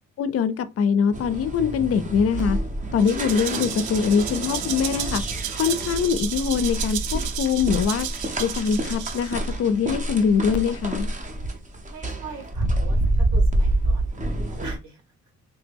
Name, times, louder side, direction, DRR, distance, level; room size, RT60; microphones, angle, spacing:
voice 1, 0.2-2.6 2.9-5.2 5.5-11.1, left 6 dB, 50° left, 0.5 m, -23 dB
sound 1, 1.1-14.8, right 1 dB, 25° right, 0.7 m, -27 dB
Rattle (instrument), 3.0-9.5, right 10 dB, 85° right, 0.5 m, -33 dB
voice 2, 11.9-15.0, right 4 dB, 70° right, 1.8 m, -42 dB
3.2 x 2.1 x 3.4 m
cardioid pair, 90°, 30 cm